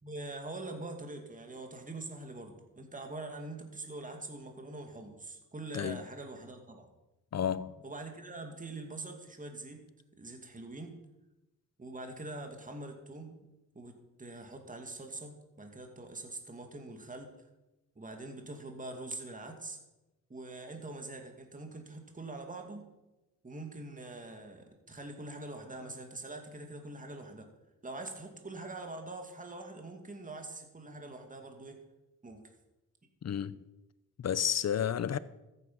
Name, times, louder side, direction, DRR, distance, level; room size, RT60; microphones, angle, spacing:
voice 1, 0.0-6.9 7.8-9.8 10.2-11.0 11.8-13.3 13.7-17.3 18.0-19.8 20.3-22.9 23.4-27.5 27.8-31.8 32.2-32.4, right 2 dB, 25° right, 2.3 m, -44 dB
voice 2, 7.3-7.7 33.2-33.6 34.2-35.2, left 9 dB, 50° left, 0.7 m, -31 dB
14.0 x 9.5 x 5.6 m
cardioid pair, 80°, 35 cm